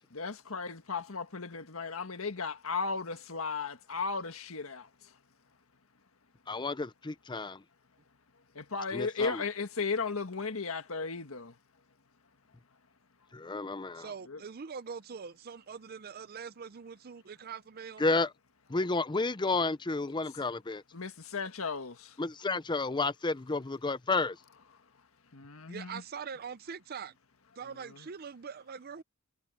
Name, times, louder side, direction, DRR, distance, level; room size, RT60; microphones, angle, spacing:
voice 1, 0.1-5.2 8.5-11.6 14.2-14.4 20.9-22.2 24.7-25.0 25.3-26.0 27.6-28.1, left 4 dB, 80° left, 1.6 m, -36 dB
voice 2, 6.5-7.6 8.9-9.4 13.3-14.1 18.0-18.3 18.7-20.8 22.2-24.4, left 3 dB, 20° left, 0.6 m, -31 dB
voice 3, 13.9-18.0 25.7-27.1 27.6-29.0, right 6 dB, 45° right, 0.5 m, -43 dB
head